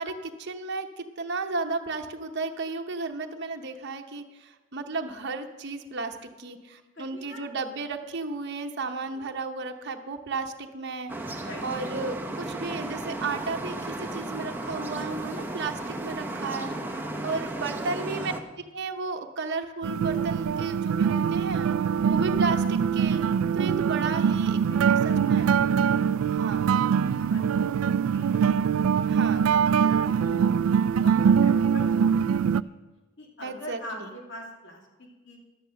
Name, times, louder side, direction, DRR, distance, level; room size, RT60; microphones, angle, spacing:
voice 1, 0.0-16.7 17.2-18.3 18.7-21.7 22.0-23.2 23.5-24.8 25.3-25.6 26.3-26.7 29.1-29.5 33.4-34.1, right 3 dB, 55° right, 4 dB, 0.9 m, -33 dB
voice 2, 6.9-7.5 9.1-9.3 11.4-11.6 15.4-15.5 16.3-17.2 17.5-18.3 22.1-22.2 24.6-26.3 26.6-28.7 29.7-31.1 31.4-32.8 33.2-35.4, equal, 60° left, 0 dB, 2.6 m, -45 dB
sound 1, 11.1-18.4, right 2 dB, 10° right, 0.9 m, -34 dB
sound 2, 19.8-32.6, right 7 dB, 85° right, 0.3 m, -23 dB
12.0 x 8.9 x 6.3 m, 1.2 s
head